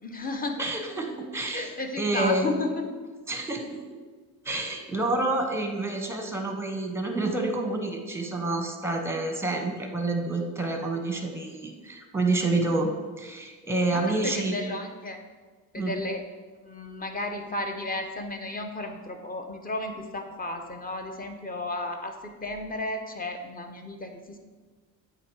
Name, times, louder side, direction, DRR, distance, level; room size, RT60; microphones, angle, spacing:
voice 1, 0.0-0.6 1.3-2.9 13.9-15.2 15.7-16.2 16.6-24.4, left 2 dB, 20° left, 5 dB, 0.8 m, -33 dB
voice 2, 0.6-1.7 2.0-2.5 3.3-3.8 4.4-12.9 13.2-14.6 15.8-15.9, right 2 dB, 5° right, 3 dB, 0.9 m, -28 dB
8.3 x 2.9 x 4.7 m, 1.4 s
cardioid pair, 95°, 39 cm